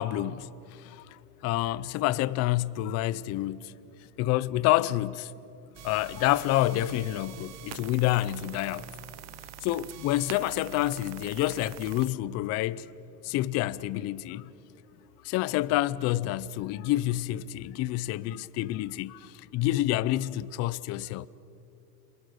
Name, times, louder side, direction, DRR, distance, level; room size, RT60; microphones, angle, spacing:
voice 1, 0.0-1.0 1.4-3.7 4.2-5.3 5.8-8.9 9.6-12.9 13.2-14.5 15.2-21.3, left 15 dB, 35° left, 0.5 m, -28 dB
voice 2, 0.8-1.2 2.8-3.0 3.7-4.1 5.7-5.8 6.2-6.3 8.5-8.7 9.2-9.4 10.0-10.1 14.3-15.3 16.7-16.9 17.9-18.8 19.1-19.3, left 22 dB, 80° left, 0.6 m, -53 dB
sound 1, 5.7-12.1, right 13 dB, 35° right, 0.7 m, -45 dB
28.5 x 22.5 x 6.8 m
supercardioid pair, 145°, 45 cm